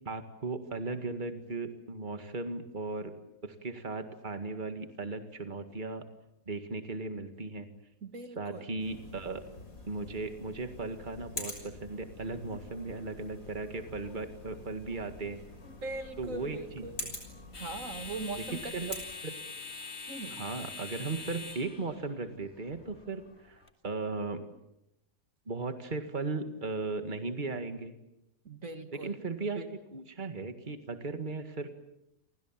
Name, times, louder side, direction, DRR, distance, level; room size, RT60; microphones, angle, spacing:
voice 1, 0.1-3.1 3.4-6.0 6.5-7.7 8.4-9.4 9.9-15.4 16.2-17.1 18.7-19.3 20.3-24.4 25.5-27.9 28.9-31.7, right 3 dB, 35° right, 7 dB, 2.1 m, -37 dB
voice 2, 8.0-8.7 15.6-17.0 17.5-18.7 20.1-20.4 28.5-29.2, right 3 dB, 70° right, 8 dB, 2.3 m, -40 dB
sound 1, 8.8-19.0, left 2 dB, 85° left, 6.8 m, -46 dB
sound 2, 12.4-23.7, left 4 dB, 50° left, 2.5 m, -46 dB
30.0 x 25.0 x 7.5 m, 0.86 s
omnidirectional pair, 1.4 m